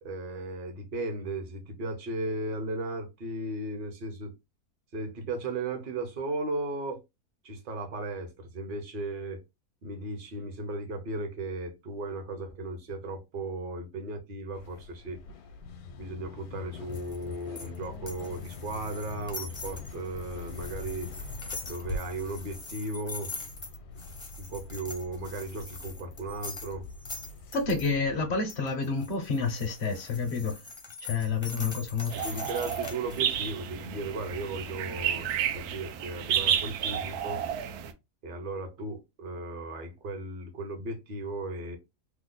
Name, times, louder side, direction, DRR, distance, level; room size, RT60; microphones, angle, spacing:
voice 1, 0.0-4.3 4.9-7.0 7.4-9.4 9.8-15.2 16.0-21.1 21.7-23.3 24.4-26.9 32.1-37.4 38.2-41.8, right 2 dB, 45° right, 0.8 m, -36 dB
sound 1, 14.5-28.3, left 3 dB, 80° left, 1.1 m, -43 dB
sound 2, 16.9-27.9 28.5-33.2, left 3 dB, 30° left, 0.5 m, -43 dB
voice 2, 27.5-30.6 31.0-32.4, left 4 dB, 55° left, 0.8 m, -29 dB
sound 3, 32.1-37.9, right 9 dB, 80° right, 1.1 m, -31 dB
3.1 x 2.0 x 3.6 m
omnidirectional pair, 1.6 m